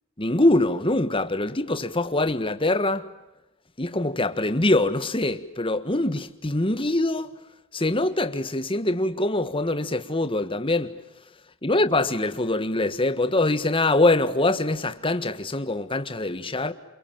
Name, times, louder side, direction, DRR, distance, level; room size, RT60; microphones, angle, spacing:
voice 1, 0.2-3.1 3.8-7.3 7.7-11.0 11.6-16.7, left 2 dB, 25° left, 1.5 m, -24 dB
28.5 x 28.0 x 7.5 m
head